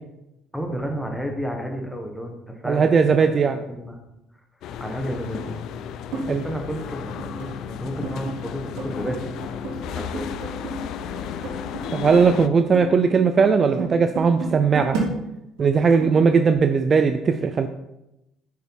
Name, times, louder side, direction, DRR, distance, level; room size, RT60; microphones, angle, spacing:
voice 1, 0.5-4.0 4.8-5.6 6.1-9.4 9.9-10.3, equal, ahead, 2 dB, 1.4 m, -32 dB
voice 2, 2.7-3.6 6.3-6.4 11.9-15.0 15.6-17.7, right 5 dB, 30° right, 8 dB, 0.4 m, -18 dB
sound 1, 4.6-12.5, left 8 dB, 60° left, 0.5 m, -33 dB
sound 2, 6.1-6.3 7.2-7.8 8.0-8.5 8.8-12.4 12.7-15.1 15.6-16.4, right 3 dB, 75° right, 3.4 m, -32 dB
7.8 x 7.1 x 4.7 m, 0.90 s
cardioid pair, 145°, 0 cm